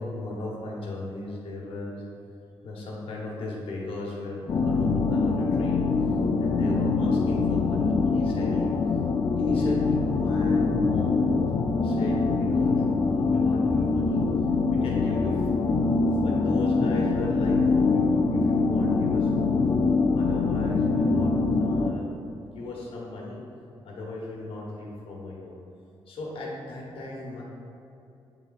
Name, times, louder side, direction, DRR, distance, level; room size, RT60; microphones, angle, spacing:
voice 1, 0.0-2.0 2.6-6.1 6.4-9.0 9.3-11.5 11.8-14.2 14.7-15.7 16.2-19.6 20.1-22.1 22.3-23.4 23.8-25.5 26.1-27.4, left 2 dB, 75° left, -3 dB, 1.3 m, -37 dB
sound 1, 4.5-21.9, left 4 dB, 45° left, 0.4 m, -24 dB
8.0 x 3.7 x 4.0 m, 2.7 s
wide cardioid pair, 140°, 10 cm